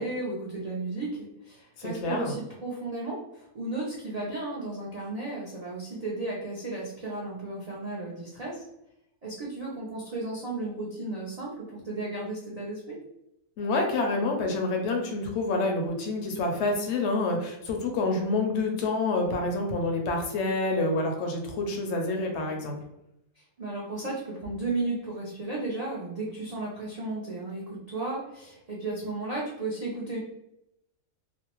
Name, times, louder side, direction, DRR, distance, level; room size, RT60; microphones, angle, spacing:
voice 1, 0.0-8.6 9.2-13.0 23.6-30.2, right 2 dB, 70° right, -5 dB, 0.3 m, -34 dB
voice 2, 1.8-2.3 13.6-22.8, left 2 dB, 65° left, 2 dB, 0.7 m, -28 dB
2.6 x 2.0 x 2.9 m, 0.84 s
omnidirectional pair, 1.5 m